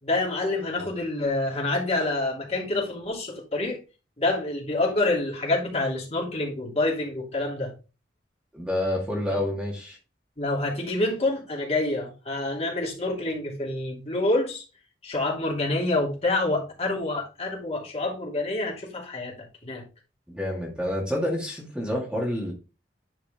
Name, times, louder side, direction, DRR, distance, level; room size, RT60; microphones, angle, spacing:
voice 1, 0.0-3.8 4.2-7.7 10.4-14.6 15.0-19.3 19.6-19.8, left 2 dB, 35° left, 2.8 m, -27 dB
voice 2, 8.5-10.0 20.3-22.5, left 1 dB, 5° right, 1.9 m, -28 dB
10.5 x 4.8 x 3.5 m
head